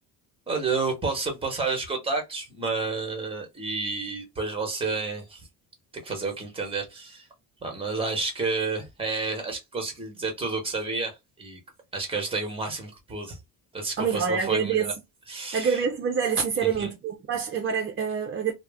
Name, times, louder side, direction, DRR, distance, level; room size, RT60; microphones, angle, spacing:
voice 1, 0.5-5.5 6.0-7.3 7.6-11.6 11.9-13.4 13.7-14.9 15.3-15.8 16.6-16.9, right 3 dB, 15° right, 1.1 m, -30 dB
voice 2, 14.0-14.9 15.5-18.5, right 6 dB, 30° right, 0.5 m, -26 dB
2.3 x 2.0 x 3.5 m
cardioid pair, 110°, 39 cm